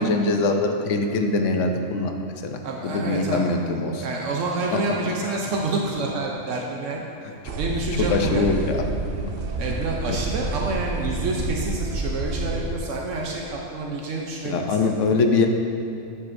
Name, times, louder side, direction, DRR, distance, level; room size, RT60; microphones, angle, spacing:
voice 1, 0.0-2.1 2.4-2.6 2.8-4.0 5.3-5.4 8.1-8.8 10.1-10.2 14.4-15.5, left 3 dB, 75° left, 4 dB, 1.0 m, -22 dB
voice 2, 2.6-3.5 4.0-7.1 7.6-8.6 9.6-14.9, right 2 dB, 75° right, -1 dB, 1.0 m, -28 dB
sound 1, 7.5-12.8, right 3 dB, 55° right, 0.7 m, -29 dB
9.5 x 7.8 x 2.6 m, 2.8 s
omnidirectional pair, 1.3 m